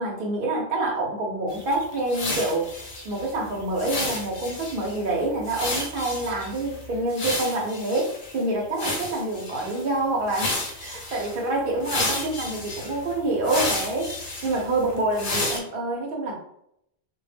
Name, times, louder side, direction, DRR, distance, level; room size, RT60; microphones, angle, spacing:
voice 1, 0.0-2.7 3.0-14.1 14.4-16.3, right 2 dB, 60° right, -1 dB, 0.9 m, -27 dB
sound 1, 1.5-8.4 8.8-9.9 10.3-11.4 11.8-15.6, left 2 dB, 45° left, 0.5 m, -32 dB
2.1 x 2.1 x 3.3 m, 0.76 s
omnidirectional pair, 1.1 m